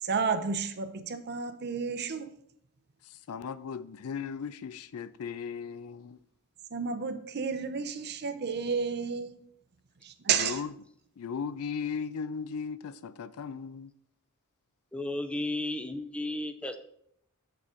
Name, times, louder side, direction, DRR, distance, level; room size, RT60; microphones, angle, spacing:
voice 1, 0.0-2.3 6.7-9.3 10.0-10.6, right 6 dB, 50° right, 0.6 m, -31 dB
voice 2, 3.1-6.2 10.3-10.7 11.2-13.9, left 6 dB, 70° left, 0.4 m, -37 dB
voice 3, 14.9-16.8, left 2 dB, 5° left, 0.5 m, -33 dB
7.4 x 6.7 x 3.7 m
head